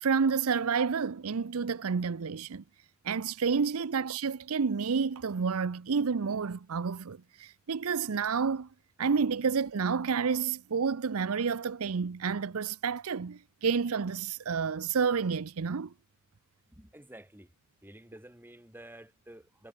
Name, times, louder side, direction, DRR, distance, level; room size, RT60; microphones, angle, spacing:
voice 1, 0.0-2.6 3.0-8.7 9.0-15.9, right 5 dB, 70° right, 0.6 m, -29 dB
voice 2, 16.7-17.5 17.8-19.7, right 1 dB, 10° right, 2.3 m, -51 dB
head